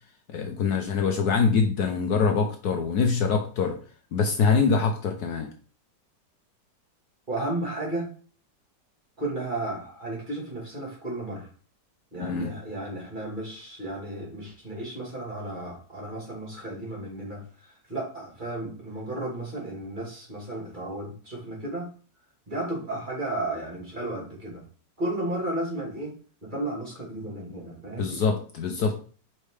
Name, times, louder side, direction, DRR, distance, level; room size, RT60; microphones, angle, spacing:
voice 1, 0.3-3.8 4.1-5.5 12.2-12.5 28.0-28.9, left 5 dB, 65° left, 4 dB, 1.2 m, -24 dB
voice 2, 7.3-8.1 9.2-11.5 12.1-21.9 22.5-24.6 25.0-26.1 26.4-28.2, right 1 dB, 25° right, -3 dB, 2.7 m, -33 dB
5.1 x 4.3 x 4.9 m, 0.40 s
omnidirectional pair, 1.9 m